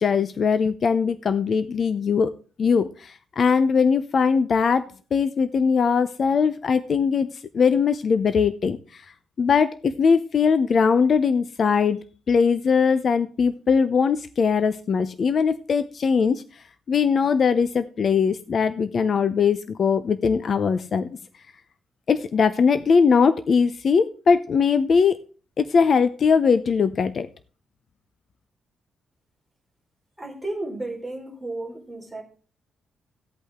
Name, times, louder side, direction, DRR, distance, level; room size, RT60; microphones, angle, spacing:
voice 1, 0.0-2.3 2.6-4.9 5.1-7.3 7.5-9.0 9.4-12.0 12.3-16.4 16.9-21.1 22.1-25.2 25.6-27.3, left 5 dB, 45° left, 12 dB, 0.6 m, -20 dB
voice 2, 30.2-32.2, right 2 dB, 5° right, -3 dB, 4.3 m, -33 dB
15.5 x 8.4 x 3.7 m, 0.39 s
cardioid pair, 130°, 0 cm